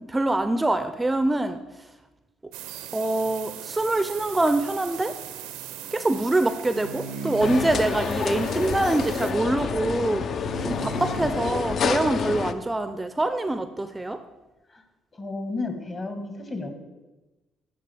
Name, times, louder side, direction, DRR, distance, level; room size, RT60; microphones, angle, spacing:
voice 1, 0.0-1.6 2.9-5.2 5.9-14.2, right 2 dB, 15° right, 10 dB, 0.4 m, -25 dB
sound 1, 2.5-9.3, right 11 dB, 80° right, 0.5 m, -40 dB
sound 2, 6.7-7.8 10.4-11.4, right 1 dB, 75° left, 1.0 m, -35 dB
sound 3, 7.4-12.5, left 6 dB, 55° left, 0.4 m, -28 dB
voice 2, 15.1-16.7, left 3 dB, 35° left, 6 dB, 1.3 m, -32 dB
11.0 x 3.8 x 3.4 m, 1.1 s
hypercardioid pair, 55°, 0 cm